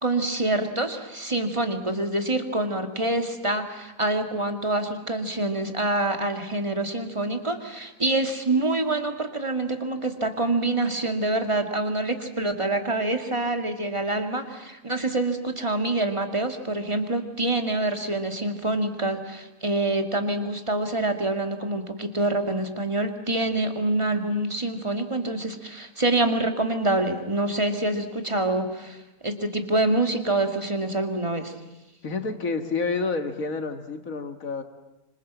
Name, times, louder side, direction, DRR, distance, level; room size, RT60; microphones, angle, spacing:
voice 1, 0.0-29.0 29.2-31.5, right 2 dB, 20° right, 5 dB, 2.3 m, -26 dB
voice 2, 32.0-34.6, left 4 dB, 85° left, 7 dB, 2.3 m, -29 dB
26.5 x 26.0 x 7.4 m, 0.98 s
omnidirectional pair, 1.4 m